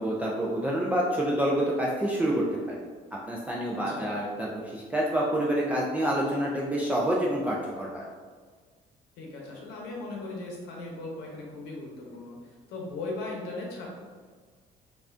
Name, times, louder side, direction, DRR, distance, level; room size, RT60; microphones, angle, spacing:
voice 1, 0.0-2.8 3.1-8.0, right 1 dB, 10° right, -5 dB, 0.3 m, -28 dB
voice 2, 3.7-4.2 9.2-12.4 12.7-13.9, left 2 dB, 90° left, -2 dB, 0.8 m, -38 dB
3.2 x 2.4 x 2.4 m, 1.6 s
cardioid pair, 110°, 17 cm